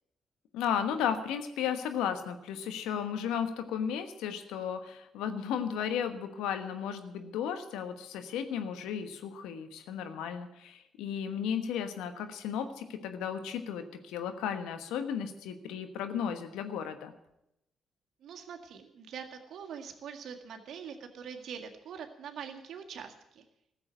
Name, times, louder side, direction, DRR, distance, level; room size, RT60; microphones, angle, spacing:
voice 1, 0.5-17.1, left 8 dB, 80° left, 8 dB, 1.2 m, -34 dB
voice 2, 18.2-23.4, right 7 dB, 65° right, 4 dB, 1.8 m, -44 dB
14.0 x 7.5 x 10.0 m, 0.83 s
hypercardioid pair, 50°, 0 cm